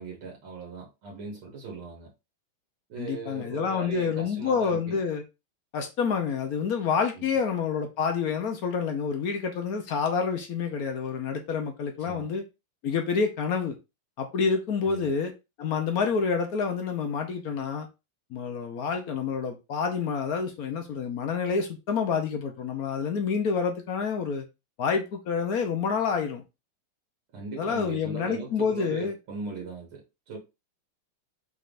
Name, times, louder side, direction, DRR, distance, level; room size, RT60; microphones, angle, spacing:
voice 1, 0.0-2.1 2.9-5.0 7.1-7.3 12.1-12.3 14.8-15.1 27.3-30.4, right 4 dB, 75° right, 2.2 m, -39 dB
voice 2, 3.0-5.2 5.7-12.4 12.8-13.8 14.2-15.3 15.6-17.9 18.3-24.4 24.8-26.4 27.6-29.1, left 5 dB, 60° left, 1.1 m, -28 dB
5.4 x 3.6 x 2.6 m
omnidirectional pair, 2.3 m